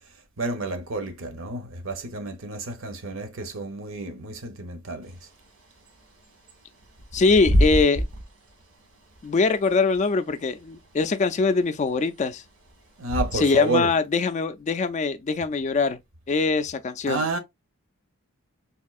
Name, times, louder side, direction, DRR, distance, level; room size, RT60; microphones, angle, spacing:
voice 1, 0.4-5.2 13.0-13.9 17.1-17.4, right 2 dB, 65° right, 0.8 m, -30 dB
Bird / Wind, 5.0-13.7, equal, 85° right, 1.6 m, -30 dB
voice 2, 7.1-8.1 9.2-12.4 13.3-16.0 16.3-17.2, left 4 dB, 35° left, 0.3 m, -22 dB
4.2 x 2.7 x 2.3 m
head